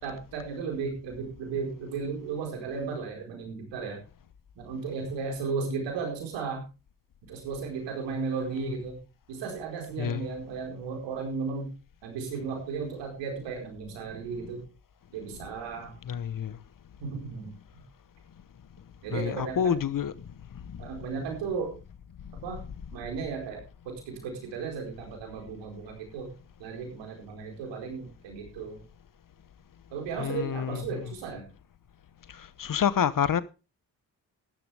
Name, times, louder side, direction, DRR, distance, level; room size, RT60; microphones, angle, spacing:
voice 1, 0.0-4.0 4.5-6.6 7.3-9.0 9.3-11.7 12.0-14.6 15.1-15.9 17.0-17.5 19.0-19.8 20.8-21.7 22.4-22.6 22.9-26.3 26.6-28.8 29.9-31.5, right 5 dB, 90° right, 4.7 m, -35 dB
voice 2, 10.0-10.3 16.1-16.6 19.1-20.1 20.5-20.8 30.2-31.1 32.3-33.4, left 8 dB, 50° left, 1.1 m, -28 dB
14.0 x 12.0 x 3.5 m
supercardioid pair, 55°, 42 cm